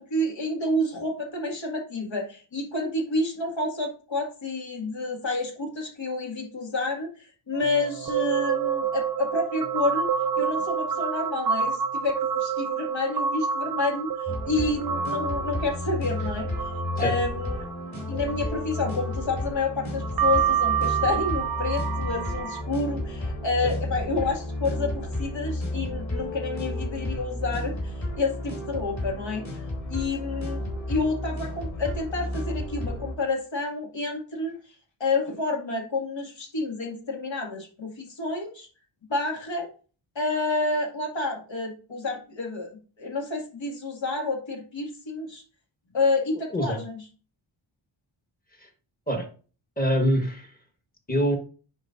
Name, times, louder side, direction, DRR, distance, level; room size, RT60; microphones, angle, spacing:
voice 1, 0.0-10.1 10.4-16.5 17.0-17.7 18.1-29.6 29.9-34.6 35.0-38.7 39.1-39.7 40.2-45.4 45.9-47.0, left 2 dB, 70° left, 0 dB, 2.2 m, -29 dB
sound 1, 7.5-19.4 20.0-22.6, right 7 dB, 50° right, 0.5 m, -28 dB
sound 2, 14.3-33.2, left 1 dB, 35° left, 2.9 m, -32 dB
voice 2, 49.8-50.5 51.1-51.4, equal, 20° left, 3 dB, 1.4 m, -24 dB
9.8 x 4.3 x 2.6 m, 0.37 s
wide cardioid pair, 130°, 47 cm